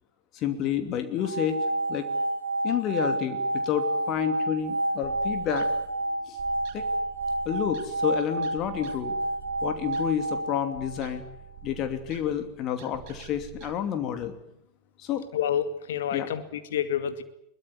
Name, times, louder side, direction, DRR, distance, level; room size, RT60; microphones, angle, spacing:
voice 1, 0.3-2.1 2.6-5.7 6.3-6.4 6.7-6.9 7.4-9.2 9.6-11.2 11.6-14.3 15.0-15.2 16.1-16.3, left 9 dB, 35° left, 8 dB, 2.7 m, -29 dB
sound 1, 1.2-11.3, right 2 dB, 75° right, 2.5 m, -30 dB
sound 2, 5.0-13.7, right 15 dB, 45° right, 2.2 m, -48 dB
voice 2, 15.3-17.2, left 9 dB, 60° left, 10 dB, 2.3 m, -28 dB
22.5 x 20.5 x 9.8 m, 0.77 s
figure-of-eight pair, 90°, 0 cm